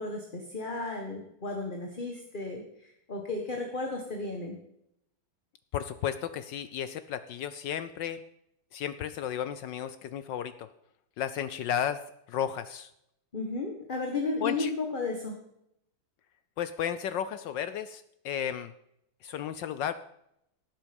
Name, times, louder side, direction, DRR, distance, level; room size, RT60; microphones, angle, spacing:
voice 1, 0.0-4.6 13.3-15.3, left 3 dB, 25° left, 2 dB, 1.4 m, -34 dB
voice 2, 5.7-8.2 8.7-10.7 11.2-12.0 12.3-12.9 14.4-14.7 16.6-18.7 19.2-19.9, left 9 dB, 70° left, 13 dB, 1.2 m, -33 dB
17.5 x 7.7 x 5.3 m, 0.77 s
omnidirectional pair, 2.3 m